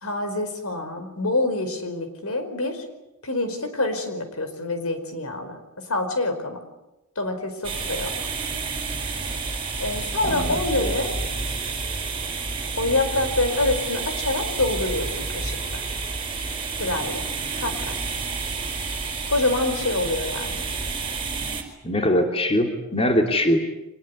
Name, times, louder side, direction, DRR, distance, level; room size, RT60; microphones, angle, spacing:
voice 1, 0.0-2.8 3.2-6.6 7.2-8.1 9.8-11.2 12.8-15.8 16.8-17.3 17.6-17.9 19.3-20.7, left 2 dB, 75° left, 8 dB, 5.0 m, -26 dB
sound 1, 7.6-21.6, right 4 dB, 25° right, 4.8 m, -30 dB
voice 2, 10.2-10.9 21.8-23.6, equal, 25° left, 4 dB, 2.9 m, -22 dB
25.0 x 21.0 x 9.7 m, 0.96 s
head